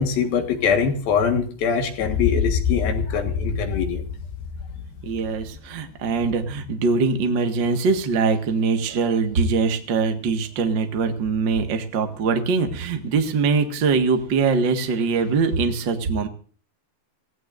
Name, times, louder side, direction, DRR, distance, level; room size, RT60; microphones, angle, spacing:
voice 1, 0.0-4.0, left 6 dB, 65° left, 6 dB, 3.2 m, -23 dB
sound 1, 2.0-5.9, left 6 dB, 90° left, 3.3 m, -27 dB
voice 2, 5.0-16.3, right 4 dB, 60° right, 5 dB, 1.2 m, -22 dB
25.0 x 16.5 x 2.6 m, 0.40 s
omnidirectional pair, 4.9 m